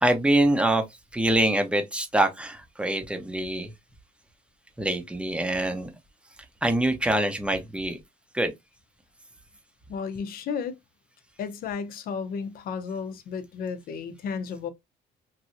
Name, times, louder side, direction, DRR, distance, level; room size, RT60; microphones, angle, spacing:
voice 1, 0.0-0.9 1.1-3.7 4.8-5.9 6.6-8.0 8.3-8.5, right 1 dB, 5° right, 0.7 m, -24 dB
voice 2, 9.9-10.8 11.4-14.7, left 6 dB, 60° left, 0.6 m, -33 dB
3.1 x 2.6 x 2.6 m
cardioid pair, 110°, 17 cm